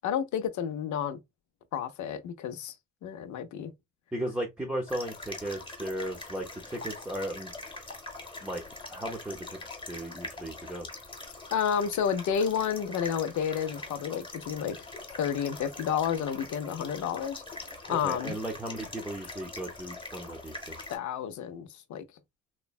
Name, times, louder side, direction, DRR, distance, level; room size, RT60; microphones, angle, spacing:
voice 1, 0.0-1.2 1.7-2.7 3.0-3.7 11.5-14.9 15.2-18.3 20.9-22.0, left 8 dB, 70° left, 0.6 m, -31 dB
voice 2, 4.1-7.5 8.4-9.6 9.9-10.9 17.9-20.8, right 1 dB, 5° right, 0.7 m, -36 dB
sound 1, 4.9-21.0, left 2 dB, 15° left, 1.1 m, -43 dB
3.1 x 2.1 x 2.3 m
cardioid pair, 90°, 30 cm